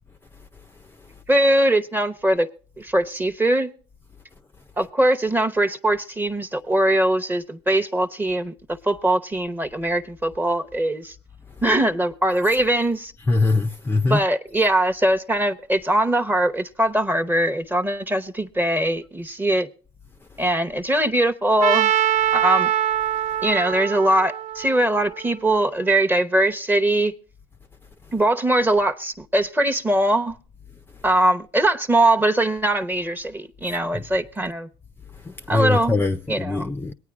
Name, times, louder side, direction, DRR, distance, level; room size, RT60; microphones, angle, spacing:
voice 1, 1.3-2.5 2.8-3.7 4.8-8.5 8.8-11.1 11.6-13.1 14.1-19.7 20.4-21.9 22.3-22.7 23.4-27.1 28.1-30.3 31.0-34.7 35.5-36.0 36.3-36.7, right 1 dB, 15° right, 0.8 m, -21 dB
voice 2, 13.3-14.2 35.3-36.9, left 3 dB, 15° left, 0.4 m, -22 dB
Trumpet, 21.6-25.6, right 11 dB, 60° right, 0.4 m, -23 dB
23.0 x 9.3 x 2.4 m
supercardioid pair, 85°, 14 cm